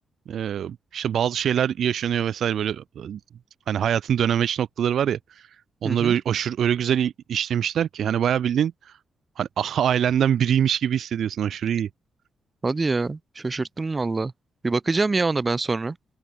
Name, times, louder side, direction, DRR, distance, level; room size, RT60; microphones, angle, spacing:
voice 1, 0.3-3.2 3.7-5.5 5.8-8.9 9.4-11.9, right 9 dB, 65° right, 4.0 m, -24 dB
voice 2, 5.8-6.2 12.6-14.3 14.6-16.0, right 3 dB, 20° right, 7.8 m, -25 dB
open air
wide cardioid pair, 160°, 0 cm